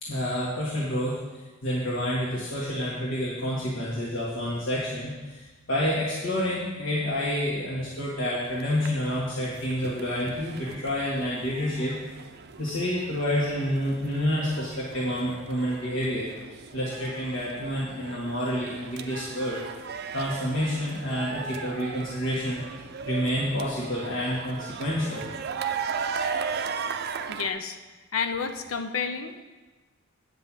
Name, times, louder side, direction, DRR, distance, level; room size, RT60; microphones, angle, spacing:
voice 1, 0.0-1.2 1.6-12.0 12.6-16.3 16.7-19.7 20.1-22.6 23.0-25.3, equal, 65° left, -7 dB, 1.9 m, -28 dB
sound 1, 8.4-27.5, right 6 dB, 50° right, 0.5 m, -37 dB
voice 2, 27.3-27.8 28.1-29.4, left 6 dB, 85° left, 8 dB, 0.8 m, -30 dB
9.1 x 5.5 x 7.5 m, 1.2 s
head